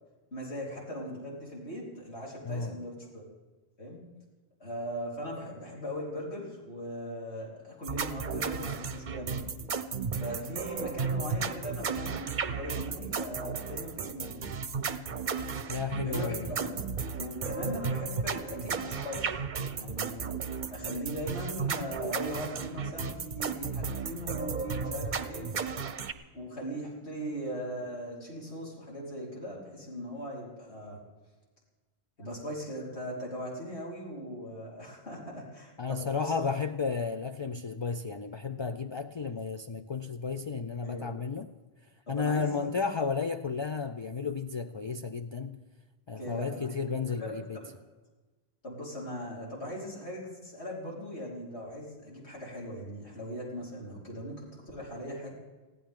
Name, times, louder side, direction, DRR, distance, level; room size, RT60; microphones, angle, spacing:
voice 1, 0.3-3.2 3.8-4.0 4.6-9.4 10.2-14.6 16.0-16.8 17.2-19.4 19.7-20.3 20.7-25.6 26.3-31.0 32.2-36.3 40.8-41.1 42.1-42.7 46.1-47.7 48.6-55.3, equal, 80° left, 4.7 m, -39 dB
voice 2, 2.5-2.8 15.7-16.5 35.8-41.5 42.1-45.6 46.1-47.6, left 5 dB, 40° left, 0.4 m, -33 dB
sound 1, 7.8-26.1, right 5 dB, 50° right, 0.8 m, -34 dB
21.0 x 15.5 x 3.7 m
omnidirectional pair, 1.1 m